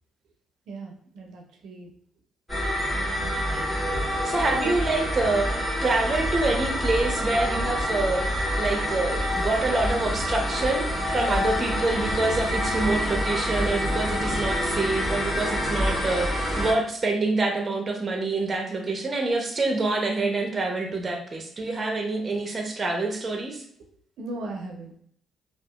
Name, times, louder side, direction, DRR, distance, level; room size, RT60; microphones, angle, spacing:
voice 1, 0.7-1.9 2.9-3.3 4.6-4.7 24.2-25.0, right 2 dB, 80° right, 1 dB, 0.5 m, -38 dB
sound 1, 2.5-16.7, equal, 15° left, 1.2 m, -27 dB
voice 2, 4.2-23.6, right 2 dB, 30° right, 2 dB, 0.6 m, -26 dB
2.7 x 2.4 x 2.2 m, 0.65 s
cardioid pair, 90°, 0 cm